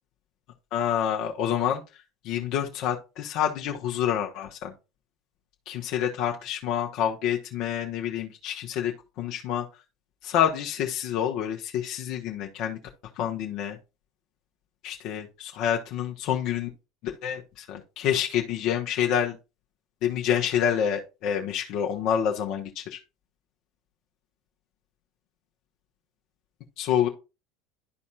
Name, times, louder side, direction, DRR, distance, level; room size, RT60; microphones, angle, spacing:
voice 1, 0.7-1.8 2.2-4.7 5.7-8.9 9.2-9.6 10.2-12.8 13.2-13.8 14.8-16.7 17.0-19.4 20.0-23.0 26.8-27.1, left 9 dB, 55° left, 1 dB, 1.1 m, -27 dB
12.5 x 4.2 x 2.5 m, 0.28 s
hypercardioid pair, 80°, 0 cm